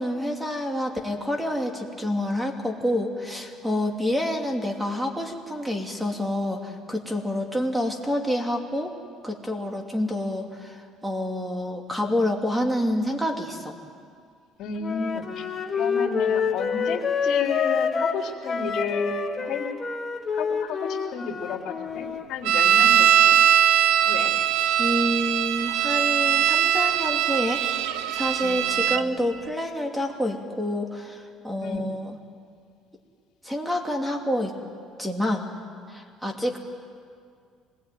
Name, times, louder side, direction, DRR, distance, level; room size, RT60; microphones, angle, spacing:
voice 1, 0.0-8.9 9.2-13.7 24.8-27.6 28.1-32.2 33.4-34.5 35.0-35.5 35.9-36.6, left 1 dB, 5° right, 3 dB, 2.8 m, -28 dB
voice 2, 14.6-15.5 15.7-19.7 20.3-23.4 24.1-24.3 28.4-29.0 31.6-31.9, left 6 dB, 60° left, 1 dB, 3.7 m, -32 dB
Wind instrument woodwind instrument, 14.8-22.2, left 5 dB, 25° left, 1.6 m, -27 dB
sound 1, 22.4-29.0, right 10 dB, 90° right, 1.1 m, -21 dB
25.5 x 20.5 x 9.3 m, 2.2 s
cardioid pair, 130°, 0 cm